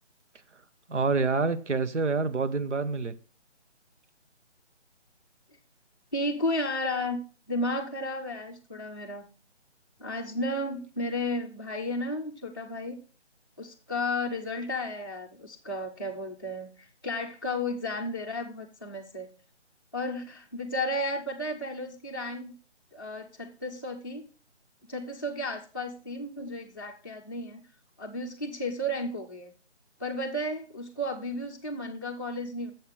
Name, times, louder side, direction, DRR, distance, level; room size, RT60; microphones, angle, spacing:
voice 1, 0.9-3.2, right 4 dB, 80° right, 1.0 m, -27 dB
voice 2, 6.1-7.2 7.5-9.3 10.0-13.0 13.6-19.3 19.9-22.5 22.9-24.3 24.9-27.6 28.0-29.5 30.0-32.7, left 1 dB, 20° left, 0.5 m, -33 dB
7.2 x 5.6 x 6.1 m
figure-of-eight pair, 155°, 35 cm